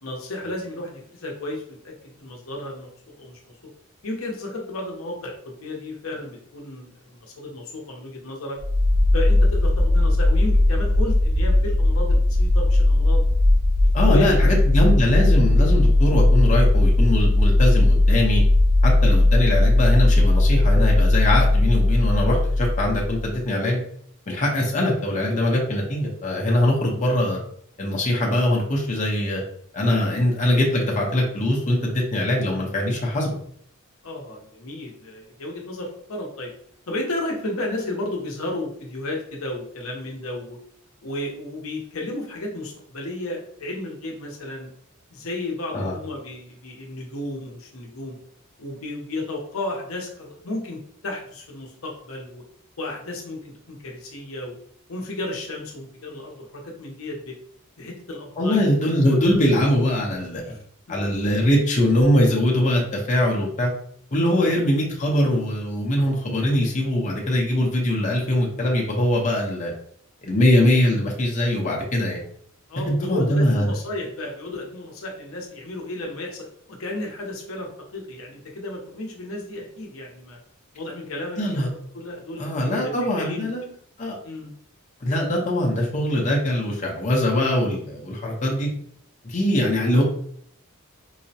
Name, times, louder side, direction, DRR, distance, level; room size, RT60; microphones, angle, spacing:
voice 1, 0.0-3.5 4.0-8.6 9.1-13.2 14.0-14.5 34.0-36.5 36.9-40.6 41.0-44.7 45.1-48.2 48.6-52.4 52.8-54.5 54.9-57.4 57.8-58.6 59.1-59.2 60.4-60.6 64.4-64.5 72.7-80.4 80.7-81.6 81.9-83.5 84.2-84.5, left 1 dB, 75° left, 0 dB, 0.8 m, -33 dB
sound 1, 8.6-23.4, left 2 dB, 30° right, 0.4 m, -18 dB
voice 2, 13.9-18.4 18.8-23.8 24.3-27.4 27.8-29.4 29.7-33.3 45.7-45.9 58.4-60.5 60.9-63.7 64.1-69.7 70.2-72.2 72.9-73.7 81.4-81.7 82.4-83.7 84.0-84.2 85.0-88.7 89.2-90.0, left 1 dB, 35° left, -2 dB, 0.7 m, -22 dB
4.7 x 2.1 x 2.7 m, 0.63 s
head